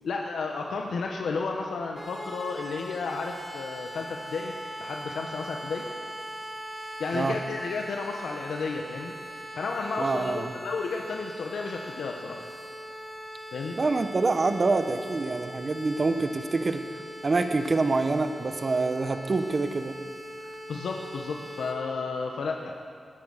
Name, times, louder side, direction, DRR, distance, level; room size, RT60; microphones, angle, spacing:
voice 1, 0.0-4.5 4.8-5.9 7.0-9.1 9.5-12.4 13.5-13.8 20.7-22.7, left 4 dB, 80° left, 1 dB, 1.2 m, -32 dB
sound 1, 1.9-21.7, equal, ahead, 5.0 m, -41 dB
voice 2, 10.0-10.5 13.8-16.8 17.2-19.9, right 3 dB, 45° right, 8 dB, 1.2 m, -26 dB
20.0 x 9.5 x 6.6 m, 2.2 s
cardioid pair, 50°, 0 cm